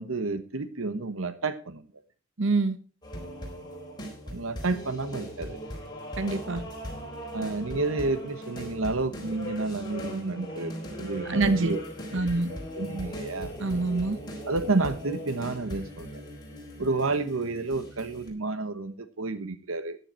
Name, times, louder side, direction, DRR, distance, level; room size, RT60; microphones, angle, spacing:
voice 1, 0.0-1.8 4.3-5.6 7.3-11.8 12.1-13.5 14.5-16.2 16.8-20.0, right 3 dB, 85° right, 12 dB, 1.1 m, -30 dB
voice 2, 2.4-2.8 6.2-6.6 11.3-11.7 12.1-12.5 13.6-14.2, right 3 dB, 65° right, 11 dB, 1.2 m, -25 dB
sound 1, 3.0-18.3, equal, 20° left, 4.1 m, -39 dB
13.5 x 9.9 x 4.4 m, 0.36 s
head